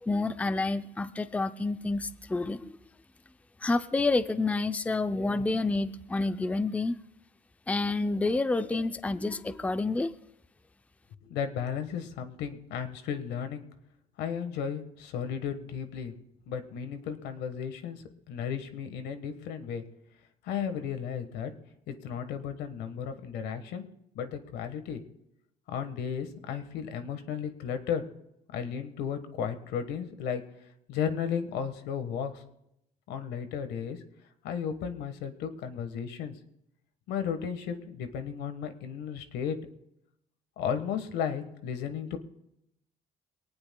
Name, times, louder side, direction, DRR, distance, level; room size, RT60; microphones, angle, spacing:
voice 1, 0.0-2.7 3.6-7.0 7.7-10.1, left 3 dB, 10° left, 11 dB, 0.5 m, -29 dB
voice 2, 11.2-13.6 14.2-16.1 16.5-19.8 20.4-21.5 21.9-23.8 24.1-25.0 25.7-28.0 28.5-30.4 30.9-32.4 33.1-34.0 34.4-36.3 37.1-39.6 40.6-42.2, left 7 dB, 85° left, 8 dB, 1.4 m, -34 dB
23.0 x 18.5 x 2.3 m, 0.82 s
cardioid pair, 110°, 17 cm